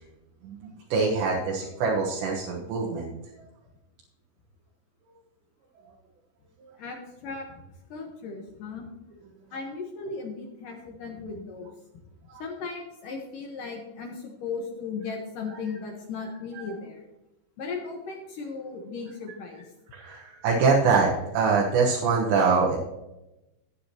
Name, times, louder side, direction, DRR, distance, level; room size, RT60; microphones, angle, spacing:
voice 1, 0.4-3.1 6.6-6.7 12.3-12.4 15.5-15.6 16.5-16.7 19.9-22.8, right 4 dB, 75° right, -3 dB, 3.4 m, -24 dB
voice 2, 6.8-7.5 7.9-8.9 9.5-11.7 12.4-17.0 17.6-19.6, left 4 dB, 65° left, 1 dB, 2.2 m, -36 dB
16.0 x 8.6 x 2.9 m, 0.96 s
omnidirectional pair, 5.2 m